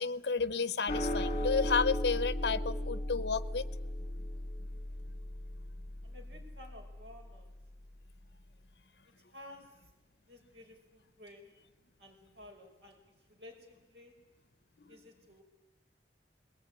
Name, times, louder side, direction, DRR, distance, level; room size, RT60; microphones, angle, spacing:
voice 1, 0.0-3.7 14.9-15.0, left 5 dB, 65° left, 15 dB, 0.8 m, -31 dB
sound 1, 0.9-7.4, left 1 dB, 40° left, 2.4 m, -36 dB
voice 2, 6.0-7.5 9.3-9.8 10.3-11.5 12.0-14.2 14.9-15.4, left 1 dB, 75° right, 2 dB, 5.4 m, -54 dB
20.5 x 19.5 x 9.7 m, 1.0 s
head